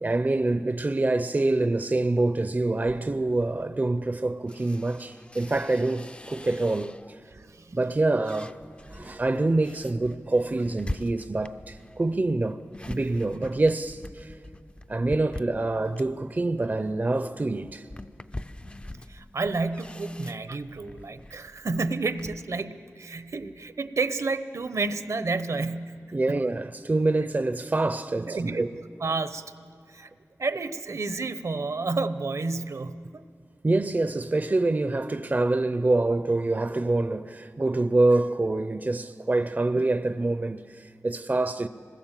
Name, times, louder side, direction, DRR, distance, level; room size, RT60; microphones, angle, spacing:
voice 1, 0.0-7.0 7.7-8.6 8.9-12.6 12.9-14.3 14.9-17.8 26.1-28.7 33.6-41.7, right 2 dB, 30° right, 0.6 m, -26 dB
sound 1, 2.8-7.3 7.7-22.5, left 1 dB, 20° left, 0.5 m, -44 dB
voice 2, 19.1-26.0 26.3-26.4 28.2-28.6 29.0-29.5 29.9-30.1 30.4-33.2, right 3 dB, 70° right, 0.9 m, -30 dB
26.5 x 20.5 x 7.5 m
wide cardioid pair, 85°, 5 cm